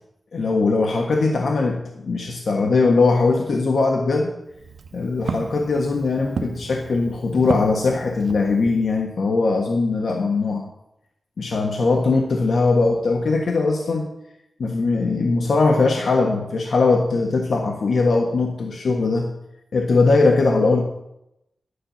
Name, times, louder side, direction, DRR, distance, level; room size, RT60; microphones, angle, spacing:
voice 1, 0.3-4.3 4.9-10.7 11.4-14.1 14.6-19.3 19.7-20.8, left 3 dB, 75° left, 2 dB, 1.4 m, -20 dB
Walk footsteps, 4.4-9.0, right 5 dB, 85° right, 0.7 m, -34 dB
11.5 x 10.0 x 5.7 m, 0.85 s
wide cardioid pair, 135°, 0 cm